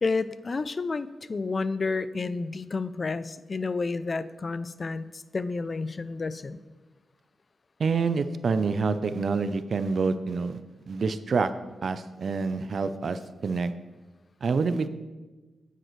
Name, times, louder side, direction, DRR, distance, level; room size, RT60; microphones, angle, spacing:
voice 1, 0.0-6.6, left 3 dB, 40° left, 15 dB, 0.4 m, -30 dB
voice 2, 7.8-10.6 10.9-11.5 11.8-13.7 14.4-14.9, right 4 dB, 60° right, 12 dB, 0.5 m, -27 dB
9.2 x 9.0 x 3.1 m, 1.2 s
cardioid pair, 95°, 0 cm